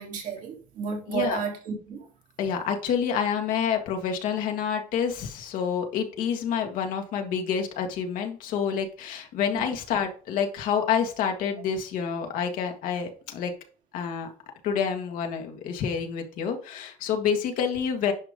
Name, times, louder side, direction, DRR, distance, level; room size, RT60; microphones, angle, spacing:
voice 1, 0.0-2.1 9.4-9.7, right 6 dB, 75° right, 3.2 m, -33 dB
voice 2, 1.1-1.4 2.4-13.5 13.9-14.3 14.6-18.1, left 7 dB, 80° left, 1.7 m, -28 dB
10.5 x 5.1 x 3.6 m
cardioid pair, 85°, 14 cm